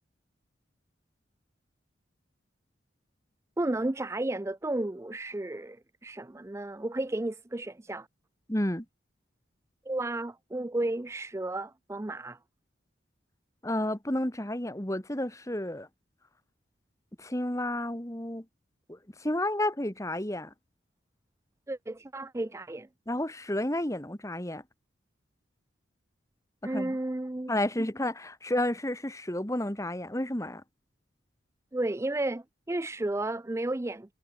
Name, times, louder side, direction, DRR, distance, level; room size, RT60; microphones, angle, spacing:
voice 1, 3.6-8.1 9.9-12.4 21.7-22.9 26.6-27.5 27.8-27.9 31.7-34.1, right 2 dB, 15° right, 0.4 m, -33 dB
voice 2, 8.5-8.8 13.6-15.9 17.2-18.4 18.9-20.5 23.1-24.6 26.7-27.0 27.5-30.6, left 1 dB, 15° left, 1.8 m, -31 dB
head